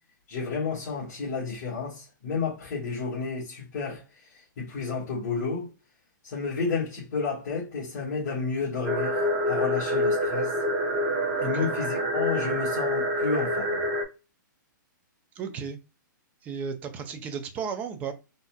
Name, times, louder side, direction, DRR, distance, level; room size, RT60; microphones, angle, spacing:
voice 1, 0.3-5.7 6.2-10.5 11.4-13.8, left 4 dB, 45° left, 1.5 m, -31 dB
sound 1, 8.8-14.0, equal, 30° right, 0.8 m, -26 dB
voice 2, 15.4-15.8 16.4-18.1, right 6 dB, 15° right, 0.4 m, -34 dB
4.1 x 2.4 x 2.2 m
hypercardioid pair, 160°, 11 cm